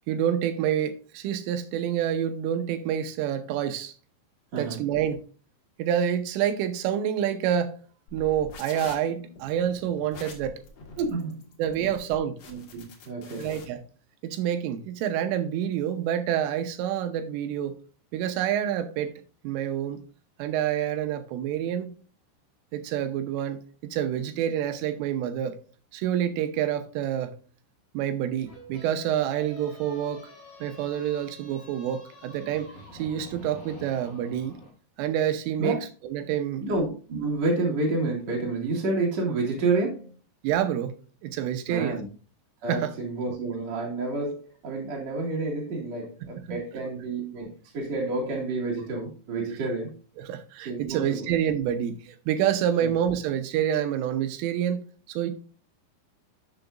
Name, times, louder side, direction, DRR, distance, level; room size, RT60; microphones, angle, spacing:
voice 1, 0.1-3.9 4.6-5.2 5.8-7.8 8.1-10.6 11.6-12.4 13.4-13.8 14.2-17.8 18.1-19.1 19.4-20.0 20.4-21.9 22.7-25.6 25.9-27.3 27.9-30.3 30.6-34.6 35.0-35.8 36.0-36.6 40.4-40.9 41.2-42.0 42.7-42.9 46.5-46.6 50.2-54.8 55.1-55.3, right 10 dB, 90° right, 3.3 m, -27 dB
sound 1, 8.1-13.6, left 4 dB, 75° left, 1.5 m, -45 dB
voice 2, 11.0-11.5 12.5-13.6 35.6-35.8 36.6-40.2 41.7-42.1 42.6-49.9 50.6-51.3 52.8-52.9, right 3 dB, 45° right, 2.4 m, -29 dB
sound 2, 28.4-34.7, left 1 dB, 30° left, 4.1 m, -47 dB
11.5 x 6.9 x 2.5 m
omnidirectional pair, 5.8 m